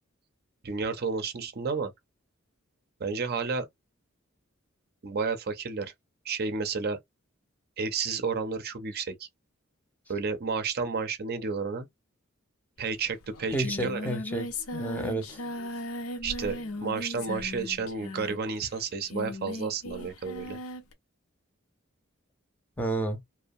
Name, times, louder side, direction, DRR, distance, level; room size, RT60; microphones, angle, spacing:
voice 1, 0.6-1.9 3.0-3.7 5.0-5.9 6.3-7.0 7.8-9.3 10.1-11.9 12.8-14.0 16.2-20.6, right 5 dB, 50° right, 0.5 m, -31 dB
Singing, 12.9-13.0 13.2-20.9, left 1 dB, 85° left, 0.6 m, -38 dB
voice 2, 13.5-15.4 22.8-23.2, right 1 dB, 10° left, 0.6 m, -31 dB
2.6 x 2.1 x 2.5 m
head